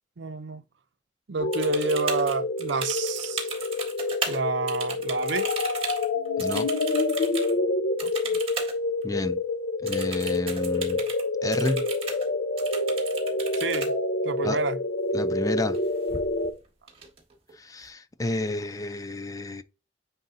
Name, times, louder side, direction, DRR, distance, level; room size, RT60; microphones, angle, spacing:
voice 1, 0.2-0.6 1.3-3.5 4.3-5.5 8.0-8.4 13.6-13.9 14.2-14.8, right 4 dB, 90° right, 0.6 m, -29 dB
sound 1, 1.4-16.5, left 2 dB, 80° left, 0.8 m, -27 dB
sound 2, 1.5-4.4 4.7-7.5 8.0-8.8 9.0-9.1 9.9-11.2 11.5-12.3 12.6-13.9 15.6-15.8 16.1-16.5 16.9-17.5, right 5 dB, 35° right, 1.7 m, -36 dB
voice 2, 6.4-6.7 9.0-9.4 9.8-11.0 11.4-11.9 14.4-14.6 15.1-15.8 17.5-19.6, left 2 dB, 20° left, 0.5 m, -30 dB
9.4 x 3.7 x 2.7 m
head